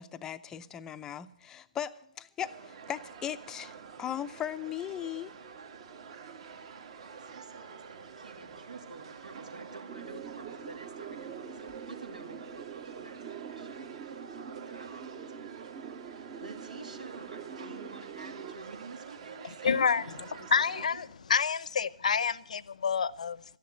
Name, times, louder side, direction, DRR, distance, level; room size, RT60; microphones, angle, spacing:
voice 1, 0.0-5.3, left 10 dB, 15° left, 0.5 m, -38 dB
sound 1, 2.4-20.9, right 6 dB, 50° right, 2.0 m, -48 dB
voice 2, 7.0-14.3 14.7-21.0, right 3 dB, 75° right, 2.4 m, -49 dB
sound 2, 9.9-18.6, right 7 dB, 25° right, 0.8 m, -45 dB
voice 3, 19.4-23.4, left 6 dB, 65° left, 0.7 m, -29 dB
13.5 x 10.5 x 7.9 m
figure-of-eight pair, 140°, 4 cm